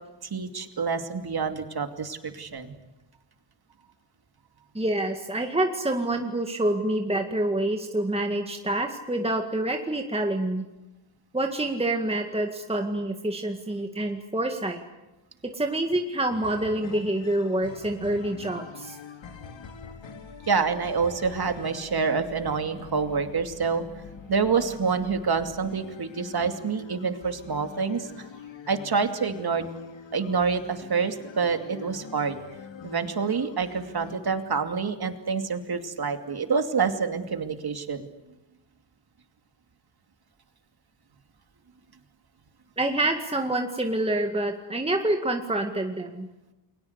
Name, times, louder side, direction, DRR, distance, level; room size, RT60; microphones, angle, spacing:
voice 1, 0.2-2.8 20.5-23.8 24.3-28.3 28.7-29.6 30.1-32.4 32.8-38.1, right 5 dB, 55° right, 7 dB, 2.7 m, -27 dB
voice 2, 4.7-10.7 11.3-14.8 15.5-19.0 42.8-46.3, right 1 dB, 15° right, 3 dB, 2.0 m, -27 dB
sound 1, 16.3-34.2, left 5 dB, 85° left, 2.6 m, -44 dB
29.5 x 22.5 x 8.2 m, 1.0 s
wide cardioid pair, 100°, 44 cm